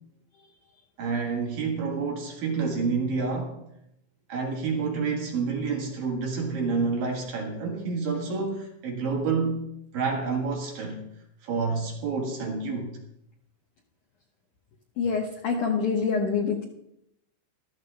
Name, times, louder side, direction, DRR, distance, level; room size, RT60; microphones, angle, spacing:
voice 1, 1.0-3.6 4.3-9.6 9.9-11.0 11.4-13.0, right 4 dB, 60° right, 0 dB, 2.9 m, -28 dB
voice 2, 15.0-16.6, left 5 dB, 90° left, 0 dB, 1.7 m, -26 dB
15.5 x 13.0 x 3.4 m, 0.78 s
omnidirectional pair, 5.4 m